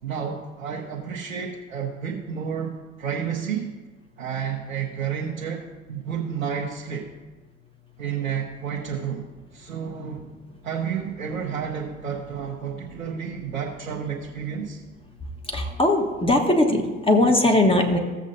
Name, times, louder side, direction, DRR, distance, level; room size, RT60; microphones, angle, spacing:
voice 1, 0.0-3.7 4.2-7.1 8.0-9.3 9.5-10.2 10.6-14.8, right 7 dB, 80° right, -1 dB, 1.1 m, -31 dB
voice 2, 15.5-18.0, left 1 dB, 15° left, 2 dB, 1.3 m, -20 dB
15.5 x 7.3 x 2.7 m, 1.3 s
figure-of-eight pair, 65°, 40 cm